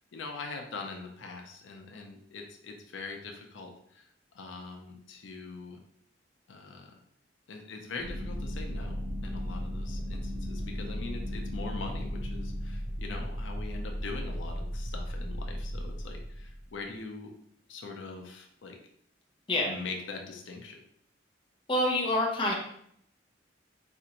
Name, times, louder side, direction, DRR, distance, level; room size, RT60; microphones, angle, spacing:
voice 1, 0.1-4.1 4.3-5.8 6.5-7.0 7.5-17.3 17.7-18.8 19.7-20.8, left 3 dB, 80° left, 3 dB, 0.5 m, -42 dB
sound 1, 8.0-16.7, equal, 45° right, 0.5 m, -35 dB
voice 2, 21.7-22.5, left 1 dB, 25° left, -1 dB, 0.6 m, -26 dB
4.2 x 2.5 x 2.9 m, 0.69 s
head